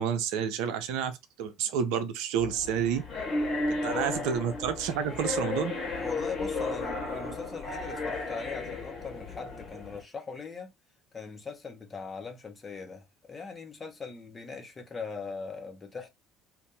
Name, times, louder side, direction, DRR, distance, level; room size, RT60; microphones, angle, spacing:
voice 1, 0.0-3.0 3.7-5.7, right 8 dB, 65° right, 0.5 m, -30 dB
sound 1, 2.4-10.0, left 2 dB, 45° left, 1.3 m, -34 dB
voice 2, 6.0-10.7 11.1-16.1, left 5 dB, 30° left, 1.1 m, -40 dB
2.7 x 2.5 x 3.7 m
figure-of-eight pair, 60°, 0 cm